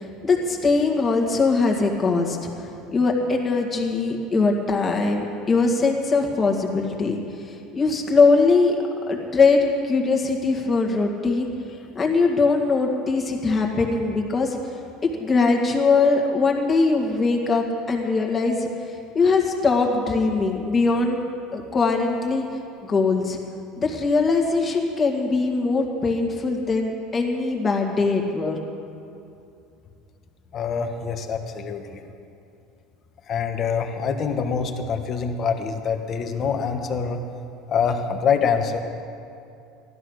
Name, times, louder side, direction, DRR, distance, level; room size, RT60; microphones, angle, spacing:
voice 1, 0.0-8.8 9.1-11.5 11.9-14.6 15.2-18.7 19.1-21.2 21.5-22.4 22.8-23.4 23.8-28.6, left 4 dB, 20° left, 0 dB, 2.0 m, -21 dB
voice 2, 30.5-32.0 33.3-37.2 37.7-38.8, left 6 dB, 40° left, 5 dB, 1.3 m, -25 dB
16.0 x 12.5 x 6.4 m, 2.6 s
supercardioid pair, 135°, 0 cm